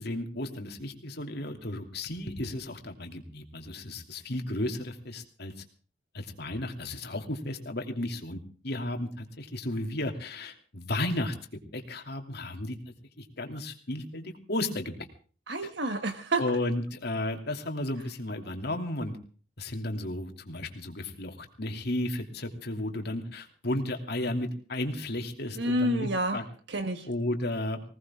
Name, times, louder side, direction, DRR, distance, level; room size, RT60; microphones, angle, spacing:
voice 1, 0.0-5.6 6.1-12.8 13.2-14.9 16.4-19.2 19.6-26.4 27.0-27.8, left 1 dB, 60° left, 4 dB, 2.9 m, -34 dB
voice 2, 15.5-16.4 25.6-26.4 26.7-27.1, right 1 dB, 65° right, 7 dB, 1.4 m, -29 dB
20.0 x 18.5 x 3.7 m, 0.40 s
head